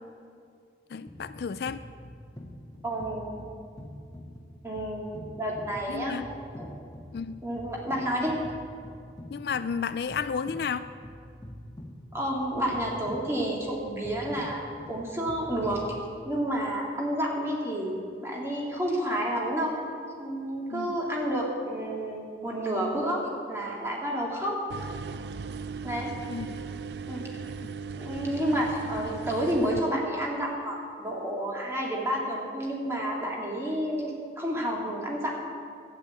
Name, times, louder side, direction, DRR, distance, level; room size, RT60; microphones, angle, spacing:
voice 1, 0.9-1.8 5.9-6.3 7.1-7.4 9.3-10.9 20.7-21.0 26.3-26.6 27.6-27.7 28.5-28.6 29.0-29.2, left 6 dB, 60° left, 13 dB, 0.4 m, -32 dB
sound 1, 1.1-16.4, equal, 20° left, 1.4 m, -45 dB
voice 2, 2.8-3.4 4.6-6.2 6.6-6.7 7.4-8.4 12.1-16.0 16.2-18.0 18.2-19.7 20.2-24.6 25.8-26.1 27.1-27.2 27.9-35.4, equal, 15° right, -2 dB, 2.3 m, -30 dB
sound 2, 24.7-29.8, right 5 dB, 70° right, 0.4 m, -37 dB
12.0 x 8.6 x 8.4 m, 2.4 s
head